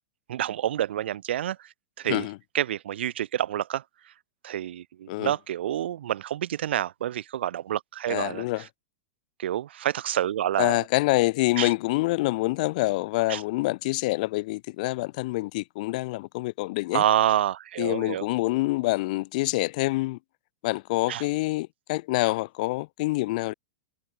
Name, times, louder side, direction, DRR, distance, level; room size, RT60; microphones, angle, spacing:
voice 1, 0.3-2.3 2.5-4.1 4.4-8.7 9.4-10.8 11.6-11.7 13.3-13.4 16.9-18.3 21.1-21.3, right 11 dB, 70° right, 0.8 m, -28 dB
voice 2, 8.1-8.6 10.6-17.0 17.8-20.2 20.6-23.5, left 21 dB, 45° left, 0.5 m, -26 dB
supercardioid pair, 160°, 6 cm